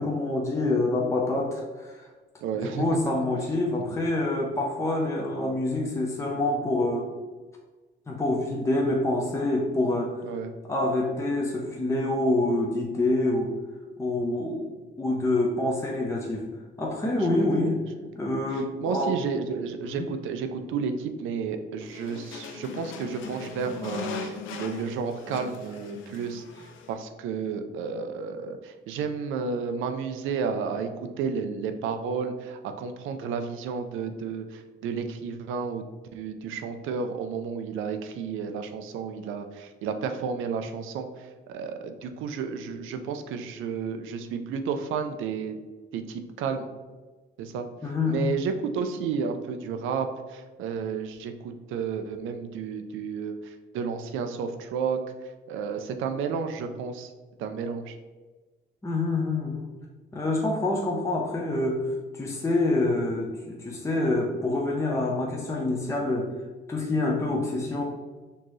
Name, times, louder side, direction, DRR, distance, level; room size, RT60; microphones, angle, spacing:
voice 1, 0.0-2.0 2.5-7.1 8.1-10.2 10.7-13.5 14.0-16.5 16.8-17.8 18.1-19.2 19.8-20.1 47.8-48.3 58.8-59.7 60.1-66.3 66.7-67.8, left 2 dB, 15° left, -2 dB, 0.6 m, -26 dB
voice 2, 2.4-2.9 3.9-4.0 10.3-10.5 17.0-17.7 18.2-26.4 26.9-30.9 31.2-35.8 36.1-41.1 41.5-45.6 45.9-46.7 47.4-47.7 48.1-55.0 55.5-57.1 57.4-58.0, right 6 dB, 85° right, 7 dB, 0.5 m, -32 dB
sound 1, 21.8-26.9, left 4 dB, 80° left, 0.5 m, -39 dB
4.4 x 2.9 x 3.1 m, 1.3 s
cardioid pair, 90°, 20 cm